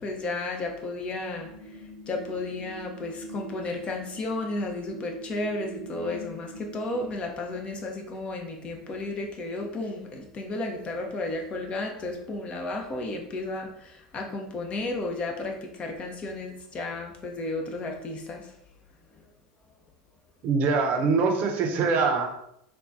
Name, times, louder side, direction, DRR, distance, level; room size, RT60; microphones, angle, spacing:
voice 1, 0.0-1.5 2.1-18.5, left 2 dB, 35° left, 2 dB, 0.6 m, -33 dB
sound 1, 1.4-7.1, right 1 dB, 90° right, 0.6 m, -43 dB
voice 2, 20.4-22.3, right 4 dB, 50° right, 3 dB, 0.6 m, -23 dB
3.8 x 2.3 x 2.5 m, 0.77 s
hypercardioid pair, 85°, 3 cm